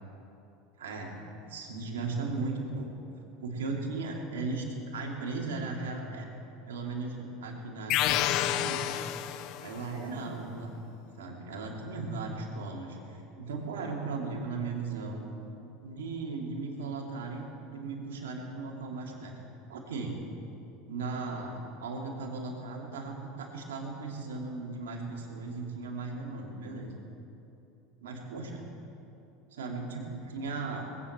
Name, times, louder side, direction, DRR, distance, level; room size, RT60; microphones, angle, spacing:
voice 1, 0.8-1.2 1.5-2.9 3.4-4.6 4.9-6.3 6.7-8.8 9.6-10.8 11.2-15.2 15.8-19.3 19.7-20.2 20.9-27.0 28.0-28.7 29.5-30.9, right 3 dB, 90° right, -1 dB, 2.6 m, -37 dB
sound 1, 7.9-9.8, left 13 dB, 60° left, 0.6 m, -29 dB
20.0 x 8.6 x 7.4 m, 2.9 s
supercardioid pair, 105°, 0 cm